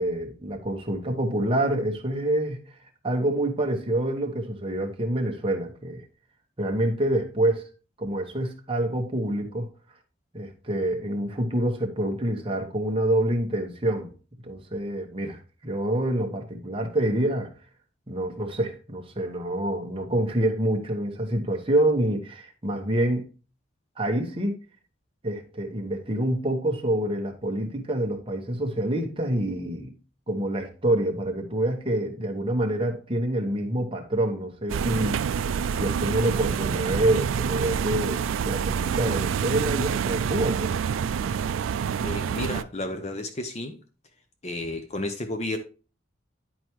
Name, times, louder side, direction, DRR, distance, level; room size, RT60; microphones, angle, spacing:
voice 1, 0.0-2.6 3.0-6.0 6.6-7.6 8.0-9.7 10.3-14.1 14.4-17.5 18.1-23.2 24.0-24.5 25.2-29.9 30.3-40.7, right 1 dB, 25° right, 1.0 m, -27 dB
sound 1, 34.7-42.6, right 7 dB, 85° right, 0.3 m, -27 dB
voice 2, 42.0-43.8 44.4-45.6, left 1 dB, 35° left, 0.6 m, -32 dB
10.0 x 4.6 x 3.0 m
head